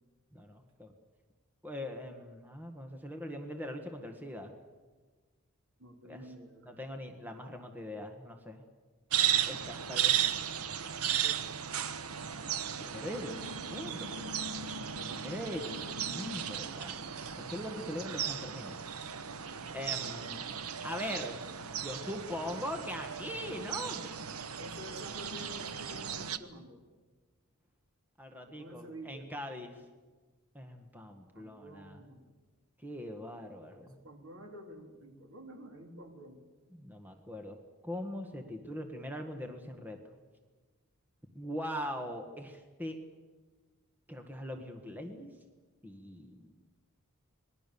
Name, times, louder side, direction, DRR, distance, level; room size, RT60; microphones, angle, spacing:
voice 1, 0.3-0.9 1.6-4.5 6.0-6.3 6.6-8.6 9.5-10.2 12.8-14.3 15.2-17.0 17.4-18.8 19.7-20.4 20.8-21.4 21.8-24.1 28.2-29.8 30.5-32.0 32.8-34.0 36.7-40.0 41.3-43.0 44.1-45.3 45.8-46.5, equal, 10° right, 4 dB, 1.6 m, -41 dB
voice 2, 5.8-6.7 11.2-11.6 14.8-15.3 24.6-26.8 28.5-29.3 31.3-32.3 33.8-36.4, equal, 65° right, 3 dB, 3.6 m, -50 dB
sound 1, 9.1-26.4, right 9 dB, 85° right, 1.0 m, -35 dB
26.5 x 20.5 x 7.0 m, 1.3 s
head